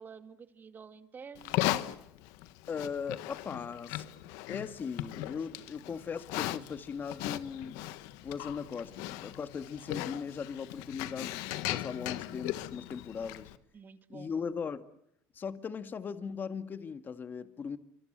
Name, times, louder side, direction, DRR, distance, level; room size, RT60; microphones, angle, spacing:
voice 1, 0.0-1.7 13.7-14.3, right 6 dB, 30° right, 2.5 m, -49 dB
Livestock farm animals working animals, 1.4-13.6, left 15 dB, 80° left, 1.5 m, -38 dB
voice 2, 2.7-4.1 4.5-7.7 8.2-13.5 14.1-14.8 15.3-17.8, left 6 dB, 35° left, 2.0 m, -38 dB
28.5 x 25.0 x 7.7 m
supercardioid pair, 105°, 6 cm